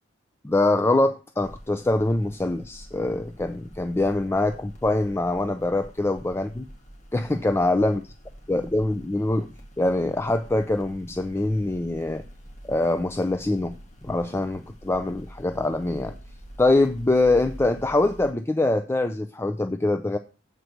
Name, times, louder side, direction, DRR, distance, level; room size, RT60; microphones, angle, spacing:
voice 1, 0.4-6.6 7.1-8.0 8.5-12.2 12.6-13.8 14.0-16.1 16.6-20.2, left 2 dB, 15° left, 9 dB, 0.4 m, -24 dB
sound 1, 1.4-18.3, equal, 40° left, 1.5 m, -46 dB
8.0 x 4.7 x 6.4 m, 0.35 s
head